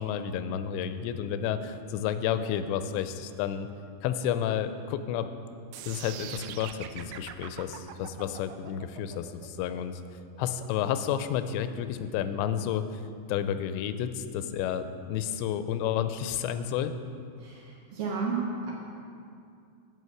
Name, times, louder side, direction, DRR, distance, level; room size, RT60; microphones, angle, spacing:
voice 1, 0.0-3.7 4.0-5.3 5.9-10.0 10.4-13.0 13.3-16.9, left 9 dB, 90° left, 11 dB, 2.8 m, -31 dB
sound 1, 5.7-11.8, right 10 dB, 85° right, 2.2 m, -43 dB
voice 2, 17.9-18.7, right 4 dB, 70° right, -3 dB, 2.2 m, -31 dB
9.5 x 5.3 x 7.8 m, 2.4 s
omnidirectional pair, 5.0 m